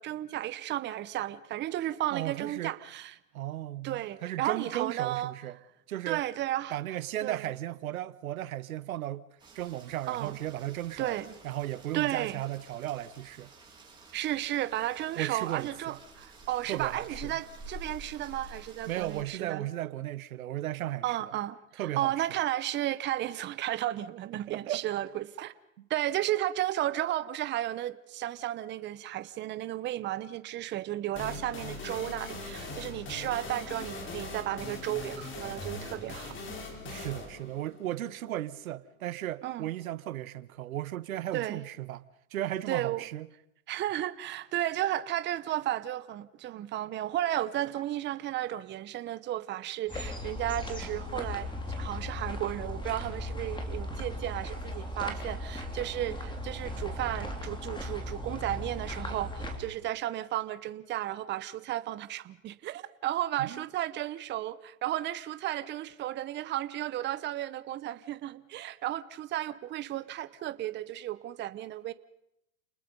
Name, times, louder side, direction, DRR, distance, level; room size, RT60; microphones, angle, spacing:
voice 1, 0.0-3.1 3.8-5.3 6.1-6.7 7.2-7.4 10.1-10.3 11.0-11.3 11.9-12.4 14.1-19.6 21.0-21.6 22.0-25.5 25.9-36.3 39.4-39.7 41.3-41.6 42.7-43.0 43.7-71.9, right 13 dB, 25° right, 0.9 m, -33 dB
voice 2, 2.1-2.8 3.3-5.6 5.9-6.2 6.7-9.2 9.5-11.2 11.4-13.5 15.2-16.0 16.7-17.4 18.9-21.2 21.8-22.3 24.5-24.8 36.8-43.3 63.4-63.6, right 13 dB, 80° right, 1.0 m, -35 dB
Rain, 9.4-19.2, right 2 dB, 10° right, 8.0 m, -50 dB
sound 1, 31.2-38.6, left 3 dB, 30° left, 3.8 m, -41 dB
sound 2, 49.9-59.6, left 1 dB, 10° left, 3.2 m, -37 dB
29.5 x 20.5 x 5.3 m
hypercardioid pair, 120°, 41 cm